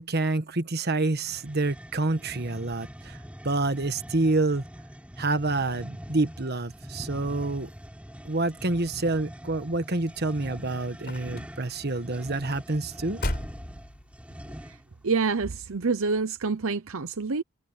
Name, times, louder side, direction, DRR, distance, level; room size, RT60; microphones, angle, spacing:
voice 1, 0.0-3.2 3.4-4.6 5.2-7.7 8.2-13.2, right 2 dB, 45° right, 1.4 m, -27 dB
sound 1, 1.2-14.9, equal, 5° right, 4.3 m, -43 dB
sound 2, 9.7-14.5 15.2-15.6 16.0-16.1, left 1 dB, 45° left, 4.8 m, -37 dB
voice 2, 15.0-17.4, right 4 dB, 70° right, 0.8 m, -27 dB
head